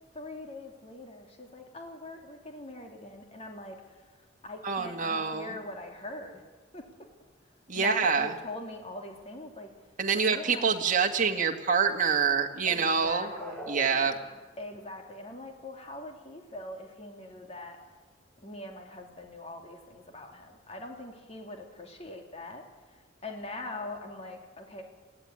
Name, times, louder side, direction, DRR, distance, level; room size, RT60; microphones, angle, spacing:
voice 1, 0.1-3.8 4.4-6.4 6.7-6.8 7.7-9.7 10.2-10.7 12.7-13.7 14.6-17.8 18.4-22.6 23.2-24.8, left 2 dB, 35° left, 2 dB, 2.8 m, -42 dB
voice 2, 4.6-5.6 7.7-8.3 10.0-13.3 13.7-14.2, right 5 dB, 45° right, 3 dB, 1.8 m, -26 dB
sound 1, 13.1-14.7, right 1 dB, 5° left, 2.7 m, -43 dB
21.5 x 15.5 x 9.7 m, 1.3 s
head